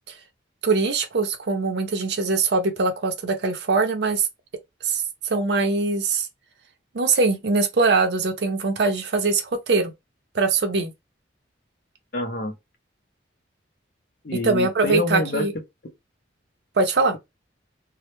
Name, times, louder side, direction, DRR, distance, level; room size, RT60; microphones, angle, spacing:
voice 1, 0.6-4.3 4.8-6.3 6.9-9.9 10.3-10.9 14.4-15.5 16.8-17.2, right 3 dB, 60° right, 0.5 m, -22 dB
voice 2, 12.1-12.6 14.2-15.5, left 2 dB, 50° left, 0.5 m, -26 dB
2.1 x 2.0 x 2.9 m
head